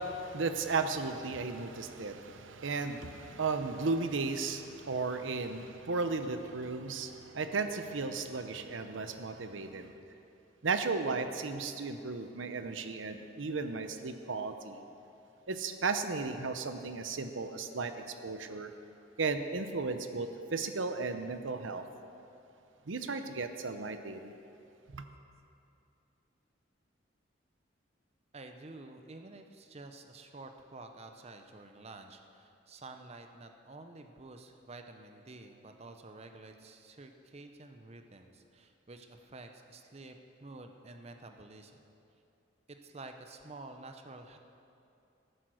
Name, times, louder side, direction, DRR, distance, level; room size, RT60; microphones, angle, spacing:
voice 1, 0.0-10.0 10.6-14.8 15.5-18.7 19.2-21.8 22.9-24.3 24.9-25.0, right 4 dB, 85° right, 8 dB, 0.8 m, -35 dB
voice 2, 28.3-40.2 40.4-41.8 42.8-44.4, right 2 dB, 35° right, 6 dB, 0.7 m, -50 dB
14.5 x 9.2 x 6.3 m, 2.7 s
head